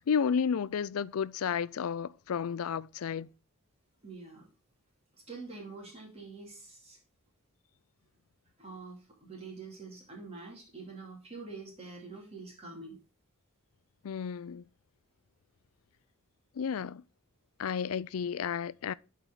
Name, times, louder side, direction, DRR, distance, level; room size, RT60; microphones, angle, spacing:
voice 1, 0.0-3.3 14.0-14.6 16.5-17.0 17.6-18.9, left 7 dB, 75° left, 0.4 m, -32 dB
voice 2, 4.0-4.5 5.1-7.0 8.6-13.0, right 3 dB, 30° right, 2.6 m, -46 dB
11.0 x 4.7 x 3.8 m
head